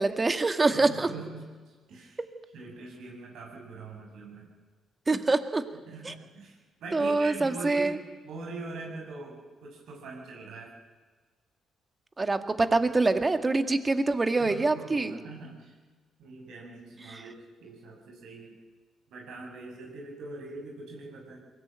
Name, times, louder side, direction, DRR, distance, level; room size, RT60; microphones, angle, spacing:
voice 1, 0.0-1.1 5.1-5.6 6.0-6.1 6.9-8.0 12.2-15.2 17.1-17.2, right 3 dB, 25° right, 8 dB, 2.0 m, -25 dB
voice 2, 0.7-2.2 2.5-4.5 5.9-10.7 14.4-15.7 16.2-18.5 19.1-21.4, right 3 dB, 80° right, -1 dB, 7.2 m, -42 dB
22.5 x 19.0 x 9.0 m, 1.4 s
cardioid pair, 90°, 0 cm